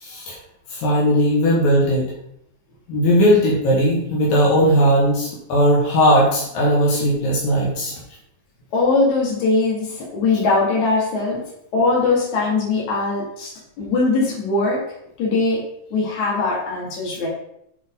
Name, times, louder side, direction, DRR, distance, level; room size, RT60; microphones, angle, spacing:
voice 1, 0.0-0.3 0.7-2.1 2.9-7.9, equal, 80° left, -5 dB, 3.2 m, -17 dB
voice 2, 8.7-11.4 11.7-13.5 13.8-14.8 15.2-15.6 15.9-17.3, left 3 dB, 60° left, -5 dB, 3.3 m, -20 dB
8.4 x 4.2 x 3.7 m, 0.73 s
omnidirectional pair, 4.0 m